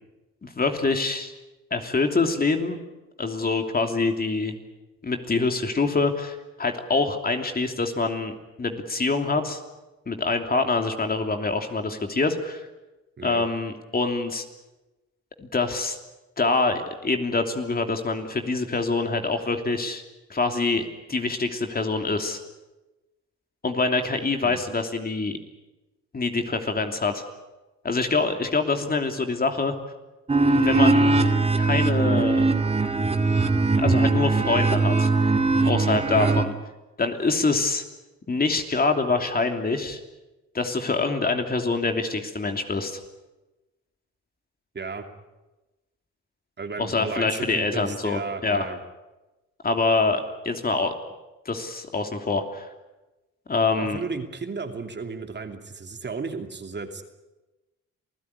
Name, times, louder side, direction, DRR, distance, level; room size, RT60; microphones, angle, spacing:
voice 1, 0.4-1.3 1.7-2.8 3.2-4.6 5.0-9.6 10.1-12.7 13.2-14.4 15.4-16.0 16.4-20.0 20.3-22.4 23.6-25.3 26.1-27.2 27.8-29.7 30.6-31.2 31.6-32.4 33.8-35.1 35.6-36.5 37.0-37.8 38.3-40.0 40.5-43.0 46.8-48.7 49.6-50.9 51.4-52.7 53.5-54.0, left 3 dB, 30° left, 5 dB, 3.0 m, -25 dB
sound 1, 30.3-36.4, right 3 dB, 20° right, 2.2 m, -21 dB
voice 2, 46.6-48.8 53.8-57.0, right 4 dB, 35° right, 5 dB, 2.7 m, -34 dB
27.5 x 16.5 x 9.8 m, 1.1 s
cardioid pair, 90°, 30 cm